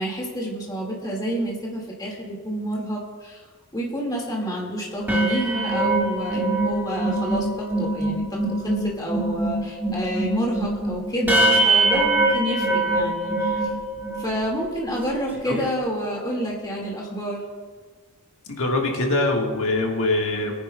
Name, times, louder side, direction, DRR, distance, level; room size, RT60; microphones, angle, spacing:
voice 1, 0.0-3.4 3.7-7.5 7.8-13.7 14.2-17.4, right 1 dB, 20° left, -2 dB, 1.9 m, -29 dB
sound 1, 5.0-14.4 14.9-15.1 15.3-15.7, right 2 dB, 10° right, 1.9 m, -23 dB
voice 2, 18.5-20.5, left 2 dB, 65° left, 0 dB, 1.5 m, -23 dB
22.0 x 9.9 x 2.2 m, 1.5 s
head